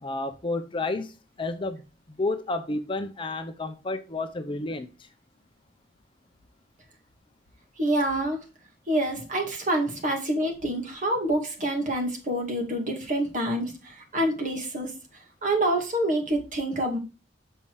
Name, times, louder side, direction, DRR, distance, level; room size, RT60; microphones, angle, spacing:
voice 1, 0.0-1.1 1.4-4.9, left 2 dB, 30° left, 0.6 m, -31 dB
voice 2, 7.8-8.5 8.9-14.9 15.4-17.0, right 1 dB, 45° right, 2.2 m, -27 dB
7.2 x 5.6 x 4.7 m
head